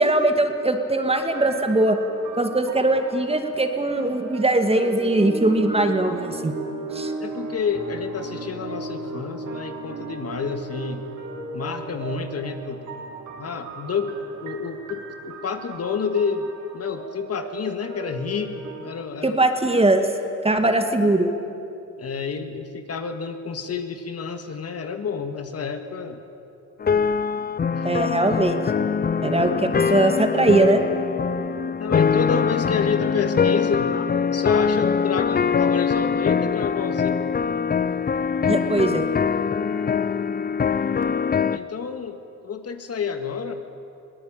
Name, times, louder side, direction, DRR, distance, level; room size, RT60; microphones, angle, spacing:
voice 1, 0.0-2.0 2.4-6.5 6.9-7.1 19.2-20.0 20.4-21.3 27.8-28.6 29.2-30.8 38.5-39.1, right 2 dB, 20° right, 6 dB, 2.1 m, -20 dB
sound 1, 1.4-19.0, right 4 dB, 65° right, 3.5 m, -36 dB
voice 2, 7.2-11.1 11.5-12.8 13.4-14.1 14.4-19.4 22.0-26.2 27.7-27.9 31.8-34.1 34.3-37.1 41.5-43.5, left 5 dB, 50° left, 7 dB, 1.9 m, -29 dB
sound 2, 26.8-41.6, left 6 dB, 30° left, 0.6 m, -23 dB
22.5 x 17.5 x 8.9 m, 2.7 s
cardioid pair, 80°, 32 cm